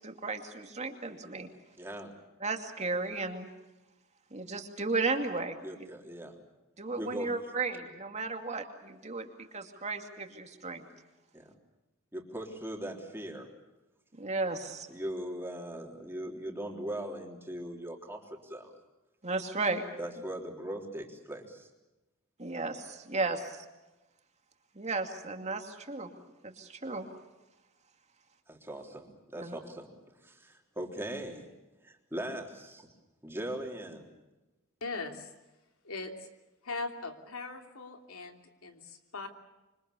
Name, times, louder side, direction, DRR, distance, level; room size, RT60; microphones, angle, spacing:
voice 1, 0.0-1.5 2.4-3.5 4.3-5.6 6.8-9.3 9.5-10.8 14.2-14.9 19.2-19.8 22.4-23.6 24.8-26.1 26.4-27.1 29.4-29.5, right 3 dB, 30° right, 4 dB, 2.4 m, -34 dB
voice 2, 1.8-2.1 5.6-6.4 7.0-7.3 11.3-11.5 12.1-13.5 14.9-18.7 20.0-21.7 28.5-29.9 30.2-31.5 31.8-32.9 33.2-34.1, right 1 dB, 10° right, 1 dB, 3.5 m, -40 dB
voice 3, 34.8-35.3 35.8-36.3 36.6-39.3, left 3 dB, 90° left, 4 dB, 3.1 m, -40 dB
26.5 x 25.0 x 6.9 m, 1.1 s
head